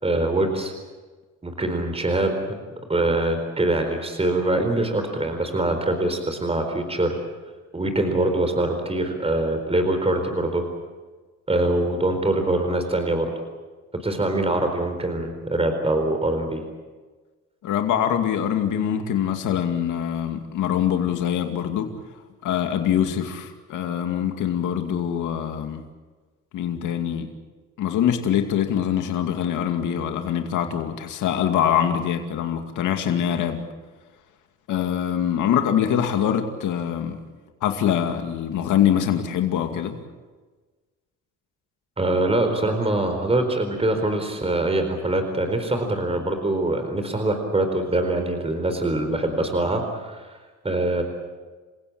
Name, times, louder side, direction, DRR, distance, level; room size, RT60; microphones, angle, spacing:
voice 1, 0.0-0.7 1.4-2.6 2.9-7.2 7.7-10.6 11.5-13.3 14.0-16.6 42.0-50.3 50.6-51.0, right 2 dB, 20° right, 4.3 m, -23 dB
voice 2, 17.6-21.9 22.4-25.8 26.5-27.3 27.8-33.6 34.7-37.2 37.6-40.0, left 9 dB, 85° left, 2.4 m, -24 dB
29.0 x 16.5 x 8.9 m
cardioid pair, 90°, 30 cm